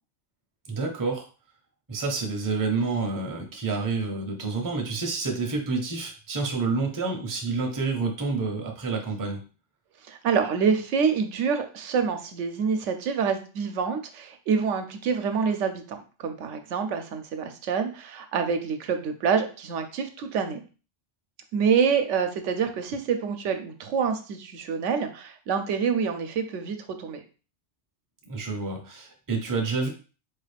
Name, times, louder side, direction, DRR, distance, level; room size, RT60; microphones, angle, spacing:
voice 1, 0.7-1.3 1.9-9.4 28.3-29.9, right 4 dB, 25° right, 2 dB, 0.5 m, -28 dB
voice 2, 10.1-20.6 21.5-27.2, right 6 dB, 85° right, 6 dB, 0.9 m, -27 dB
4.2 x 2.4 x 3.3 m, 0.35 s
omnidirectional pair, 1.2 m